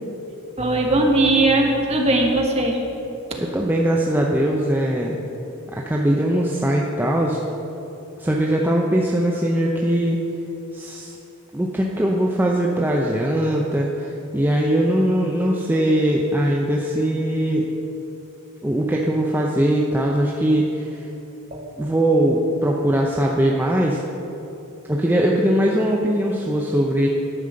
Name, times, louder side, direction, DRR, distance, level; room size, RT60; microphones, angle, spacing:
voice 1, 0.6-2.8 3.3-3.4 21.5-21.6, right 2 dB, 30° right, 0 dB, 1.3 m, -19 dB
voice 2, 3.4-5.2 5.7-7.4 8.2-10.2 10.7-11.1 11.5-17.7 18.6-21.0 21.8-24.0 24.9-27.1, right 1 dB, 10° right, -2 dB, 0.6 m, -21 dB
11.0 x 5.5 x 7.6 m, 2.9 s
head